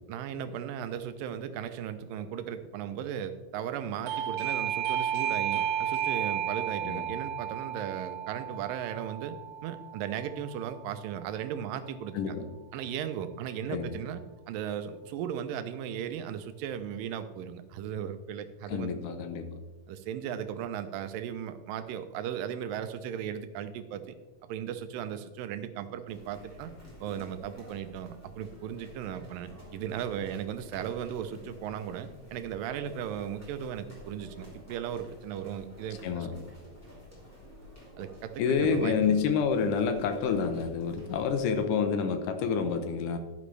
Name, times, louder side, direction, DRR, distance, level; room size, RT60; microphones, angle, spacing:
voice 1, 0.1-9.3 9.6-12.4 12.7-14.2 14.5-18.9 19.9-24.1 24.5-26.7 27.0-36.4 38.0-39.2, right 9 dB, 85° right, 10 dB, 2.4 m, -36 dB
Doorbell, 4.1-10.5, right 10 dB, 60° right, 1.7 m, -33 dB
voice 2, 12.1-12.5 13.7-14.0 18.7-19.5 36.0-36.3 38.4-43.2, left 6 dB, 75° left, 7 dB, 2.3 m, -28 dB
sound 1, 26.1-41.6, left 1 dB, 5° left, 2.9 m, -51 dB
11.0 x 10.5 x 3.3 m, 1.1 s
omnidirectional pair, 3.9 m